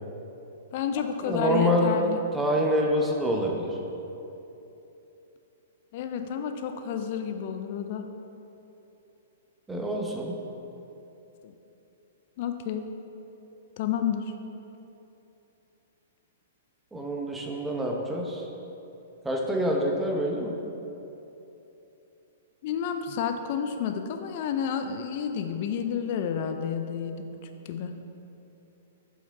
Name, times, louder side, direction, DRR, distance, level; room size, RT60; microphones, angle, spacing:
voice 1, 0.7-2.2 5.9-8.1 11.4-11.5 12.4-12.9 13.8-14.3 22.6-27.4 27.7-28.0, left 7 dB, 50° left, 7 dB, 0.4 m, -30 dB
voice 2, 1.2-2.0 2.3-3.8 9.7-10.4 16.9-18.4 19.2-20.5, equal, 10° right, 0 dB, 0.8 m, -26 dB
5.6 x 4.6 x 5.9 m, 3.0 s
hypercardioid pair, 135°, 0 cm